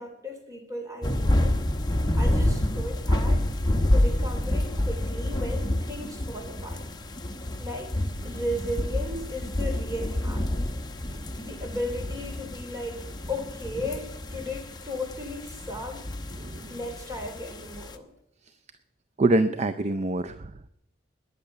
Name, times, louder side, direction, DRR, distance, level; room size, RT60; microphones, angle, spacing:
voice 1, 0.0-1.6 2.1-3.5 3.9-6.8 7.6-10.5 11.4-16.1 16.7-18.1, left 1 dB, 20° right, 4 dB, 2.9 m, -35 dB
sound 1, 1.0-17.9, left 1 dB, 25° left, 1.0 m, -28 dB
voice 2, 16.4-16.8 19.2-20.7, right 2 dB, 40° right, 11 dB, 0.5 m, -26 dB
20.5 x 6.8 x 8.1 m, 0.79 s
head